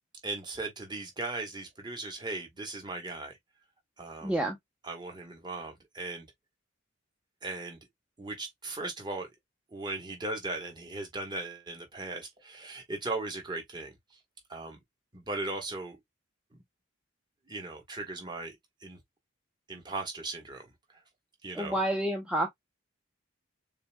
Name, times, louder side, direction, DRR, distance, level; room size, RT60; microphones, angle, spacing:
voice 1, 0.2-3.4 4.0-4.4 4.8-6.3 7.4-7.8 8.2-9.3 9.7-13.9 14.5-14.8 15.1-16.0 17.5-18.6 18.8-19.0 19.7-20.6 21.4-21.8, right 2 dB, 20° right, 1.2 m, -38 dB
voice 2, 4.2-4.6 21.5-22.5, right 1 dB, 5° right, 0.7 m, -29 dB
6.6 x 2.6 x 2.2 m
head